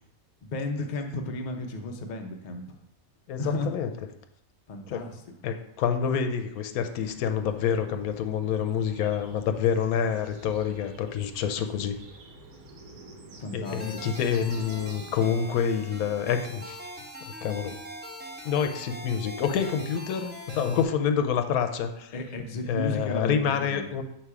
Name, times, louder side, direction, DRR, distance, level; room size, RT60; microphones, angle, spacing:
voice 1, 0.4-2.8 3.4-3.7 4.7-5.2 13.4-13.9 22.1-23.8, left 2 dB, 45° left, 3 dB, 0.6 m, -33 dB
voice 2, 3.3-3.9 4.9-5.0 5.4-12.0 13.5-16.8 17.4-17.8 18.4-22.1 22.7-24.0, left 7 dB, 85° left, 7 dB, 1.1 m, -27 dB
sound 1, 6.9-15.5, right 2 dB, 80° right, 1.2 m, -49 dB
sound 2, 13.6-20.8, equal, 10° right, 0.8 m, -42 dB
6.8 x 3.0 x 4.7 m, 0.80 s
omnidirectional pair, 1.5 m